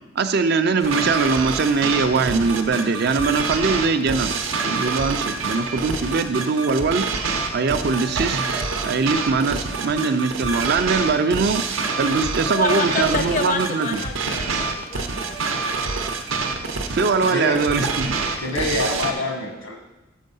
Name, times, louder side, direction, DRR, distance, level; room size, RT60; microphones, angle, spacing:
voice 1, 0.2-4.3 4.6-7.1 7.5-8.4 8.8-14.0 16.9-18.2, right 4 dB, 55° right, 9 dB, 0.4 m, -21 dB
sound 1, 0.8-19.1, right 4 dB, 85° right, 0.8 m, -27 dB
voice 2, 12.5-16.1, left 4 dB, 40° left, 6 dB, 0.5 m, -29 dB
voice 3, 17.3-17.9 18.4-19.7, left 2 dB, 90° left, 2 dB, 1.5 m, -27 dB
6.5 x 5.2 x 5.5 m, 0.98 s
head